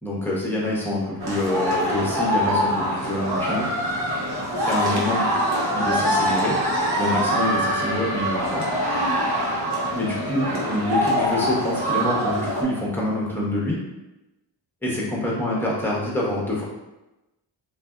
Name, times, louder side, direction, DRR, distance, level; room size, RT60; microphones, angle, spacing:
voice 1, 0.0-3.7 4.6-5.3 5.7-6.6 7.0-8.7 9.9-13.8 14.8-16.6, left 1 dB, 5° left, -5 dB, 1.0 m, -26 dB
sound 1, 1.2-12.6, equal, 50° right, 0.9 m, -24 dB
2.5 x 2.3 x 2.3 m, 0.99 s
supercardioid pair, 45°, 49 cm